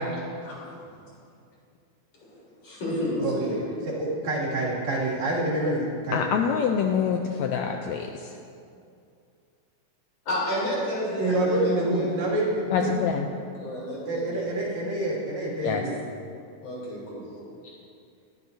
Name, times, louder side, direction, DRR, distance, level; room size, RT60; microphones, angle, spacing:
voice 1, 2.3-3.6 10.3-12.3 13.6-14.5 16.6-17.3, left 1 dB, 55° left, -6 dB, 4.6 m, -31 dB
voice 2, 4.0-6.3 11.2-12.9 14.1-16.0, right 1 dB, 65° right, -6 dB, 3.7 m, -27 dB
voice 3, 6.1-8.4 12.7-13.3 15.6-15.8, left 7 dB, 80° left, 4 dB, 1.7 m, -26 dB
20.5 x 11.5 x 2.7 m, 2.5 s
omnidirectional pair, 3.5 m